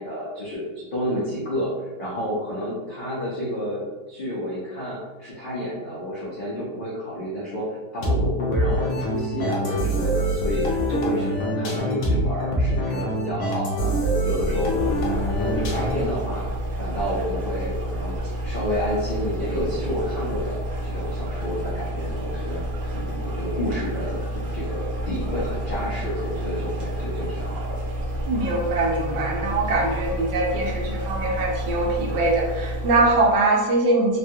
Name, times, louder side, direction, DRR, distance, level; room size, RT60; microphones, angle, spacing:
voice 1, 0.0-1.7 2.0-7.6 7.9-13.9 14.2-16.4 16.8-22.6 22.9-27.8, equal, 80° left, -7 dB, 0.4 m, -30 dB
sound 1, 8.0-16.2, equal, 65° left, 0.9 m, -25 dB
sound 2, 14.5-33.4, right 1 dB, 65° right, 1.0 m, -30 dB
voice 2, 28.3-34.2, right 2 dB, 85° right, -1 dB, 1.3 m, -22 dB
3.3 x 2.3 x 2.7 m, 1.2 s
omnidirectional pair, 1.9 m